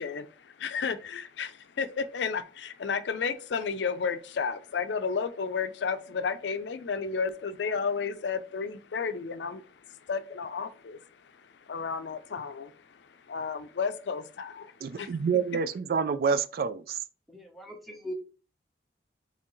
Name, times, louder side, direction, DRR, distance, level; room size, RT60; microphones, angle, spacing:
voice 1, 0.0-9.6 9.9-11.0 11.7-12.7 13.3-15.1, left 5 dB, 75° left, 0.5 m, -32 dB
voice 2, 14.8-17.0, right 6 dB, 55° right, 0.3 m, -28 dB
voice 3, 17.3-18.1, equal, ahead, 0.8 m, -40 dB
4.4 x 3.3 x 3.1 m
head